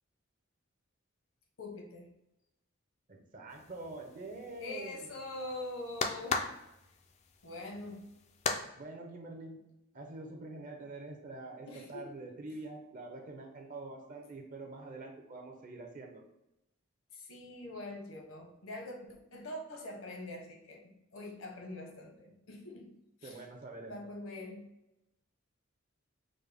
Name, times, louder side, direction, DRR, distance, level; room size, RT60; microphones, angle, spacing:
voice 1, 1.6-2.1 4.6-6.5 7.4-8.0 11.7-12.2 17.1-20.8 21.1-23.4 23.8-24.7, left 2 dB, 80° left, 1 dB, 0.9 m, -44 dB
voice 2, 3.1-5.1 8.8-9.6 9.9-16.2 23.2-24.0, right 2 dB, 40° right, 2 dB, 0.7 m, -45 dB
sound 1, 3.5-8.6, left 4 dB, 35° left, 0.3 m, -38 dB
5.1 x 2.1 x 3.3 m, 0.89 s
head